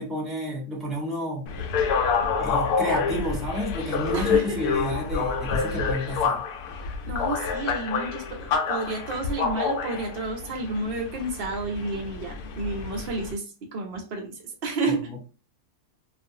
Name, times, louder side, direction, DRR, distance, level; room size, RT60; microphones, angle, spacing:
voice 1, 0.0-1.5 2.4-6.4 14.9-15.2, equal, ahead, -3 dB, 0.6 m, -30 dB
sound 1, 1.5-13.3, left 5 dB, 75° left, 1.0 m, -28 dB
voice 2, 4.1-4.6 7.0-13.4 13.7-15.0, right 2 dB, 55° right, 2 dB, 0.7 m, -31 dB
2.5 x 2.5 x 2.6 m, 0.33 s
omnidirectional pair, 1.7 m